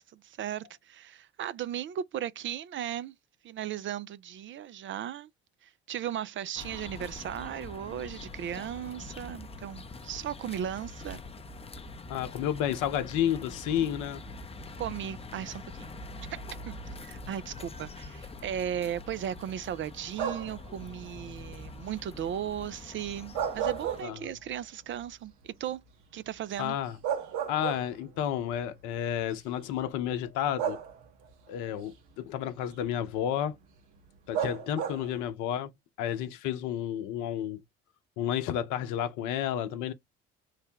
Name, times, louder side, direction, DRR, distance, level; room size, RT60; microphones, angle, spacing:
voice 1, 0.0-3.1 3.4-5.3 5.6-11.2 14.8-15.9 16.3-25.8 26.1-26.8, right 10 dB, 40° right, 0.4 m, -36 dB
sound 1, 6.5-24.0, left 2 dB, 20° left, 0.6 m, -44 dB
voice 2, 12.1-14.2 24.0-24.3 26.6-27.0 27.5-30.8 31.5-33.6 34.3-35.7 36.0-37.6 38.2-39.9, left 10 dB, 65° left, 0.7 m, -31 dB
sound 2, 20.1-20.7 23.1-24.5 24.9-25.0 26.6-26.7 27.0-28.2 29.2-29.3 30.6-31.3 34.3-35.2, right 8 dB, 65° right, 1.1 m, -33 dB
3.3 x 2.1 x 2.8 m
hypercardioid pair, 55°, 32 cm